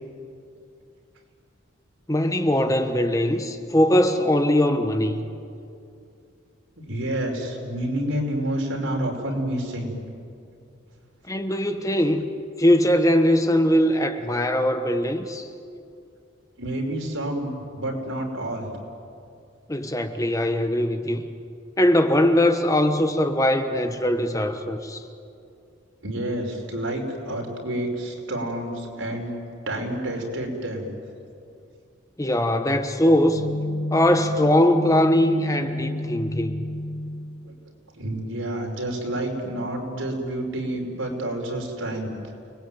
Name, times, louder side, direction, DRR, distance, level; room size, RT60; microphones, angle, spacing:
voice 1, 2.1-5.2 11.3-12.3 12.6-15.5 19.7-21.2 21.8-25.0 32.2-33.4 33.9-36.6, left 1 dB, 15° left, 7 dB, 1.3 m, -21 dB
voice 2, 6.8-9.9 16.6-18.7 26.0-29.3 29.7-30.9 37.4-37.5 37.9-42.1, right 1 dB, 90° right, 1 dB, 5.4 m, -29 dB
sound 1, 33.3-37.7, left 1 dB, 60° left, 1.1 m, -30 dB
30.0 x 20.0 x 9.3 m, 2.5 s
head